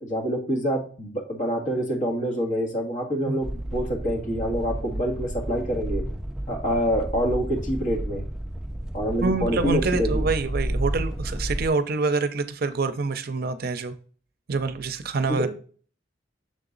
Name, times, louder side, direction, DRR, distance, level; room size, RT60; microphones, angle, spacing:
voice 1, 0.0-6.0 6.5-8.2 8.9-10.3 15.3-15.5, equal, 45° left, 0 dB, 1.7 m, -26 dB
sound 1, 3.4-11.7, right 1 dB, 5° right, 0.4 m, -31 dB
voice 2, 9.2-13.9 14.5-15.5, right 3 dB, 55° right, 11 dB, 0.5 m, -26 dB
6.5 x 4.0 x 3.9 m, 0.42 s
head